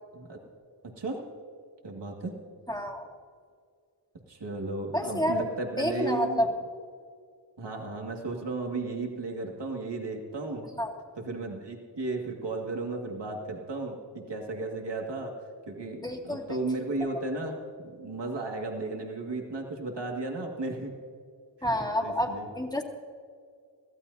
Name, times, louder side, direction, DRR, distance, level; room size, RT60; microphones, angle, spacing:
voice 1, 1.8-2.4 4.3-6.5 7.6-10.7 11.2-15.3 15.7-20.9 22.0-22.5, right 2 dB, 65° right, 0 dB, 2.2 m, -34 dB
voice 2, 2.7-3.1 4.9-5.4 5.8-6.5 10.8-10.9 16.0-16.6 21.6-22.8, equal, 10° left, -1 dB, 2.3 m, -29 dB
23.0 x 15.5 x 2.8 m, 2.1 s
wide cardioid pair, 65°, 45 cm